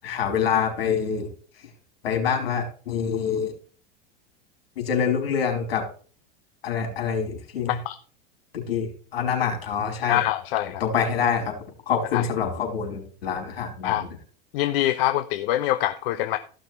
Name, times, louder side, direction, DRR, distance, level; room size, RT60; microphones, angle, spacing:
voice 1, 0.0-1.3 2.0-3.5 4.8-5.9 6.6-7.8 8.5-10.2 10.8-11.6 11.9-14.1, left 7 dB, 90° left, 3 dB, 4.6 m, -26 dB
voice 2, 10.1-10.8 12.1-12.3 13.8-14.0 14.5-16.4, left 14 dB, 70° left, 10 dB, 1.0 m, -24 dB
15.0 x 6.4 x 4.6 m, 0.41 s
supercardioid pair, 110°, 29 cm